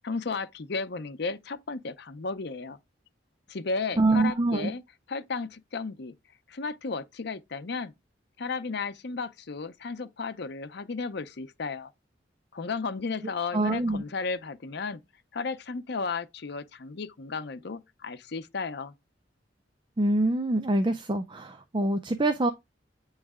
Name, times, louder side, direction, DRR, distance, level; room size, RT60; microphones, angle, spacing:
voice 1, 0.0-2.8 3.5-4.8 5.1-6.1 6.5-7.9 8.4-11.9 12.5-15.0 15.3-18.9, left 4 dB, 60° left, 0.7 m, -34 dB
voice 2, 4.0-4.7 13.5-14.0 20.0-22.5, right 2 dB, 25° right, 0.5 m, -25 dB
8.9 x 3.2 x 3.6 m
head